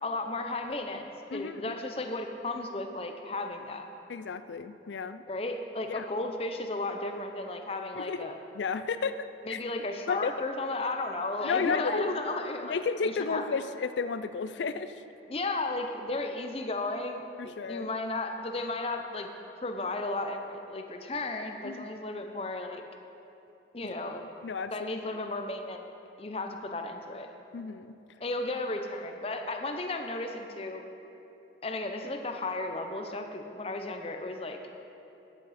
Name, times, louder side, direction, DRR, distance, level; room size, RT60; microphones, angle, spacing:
voice 1, 0.0-3.9 5.3-8.4 9.4-12.8 13.0-13.4 15.3-19.3 19.6-22.8 23.7-24.3 24.7-25.8 26.2-27.3 28.2-30.8 31.6-34.6, left 2 dB, 30° left, 5 dB, 0.6 m, -34 dB
voice 2, 1.3-1.8 4.1-5.2 5.9-6.1 8.0-8.3 8.5-9.6 10.1-10.3 11.4-12.2 12.7-14.9 17.4-17.9 21.6-21.9 23.8-24.7 27.5-27.9, left 5 dB, 80° left, 12 dB, 0.4 m, -33 dB
14.0 x 8.3 x 4.2 m, 2.9 s
head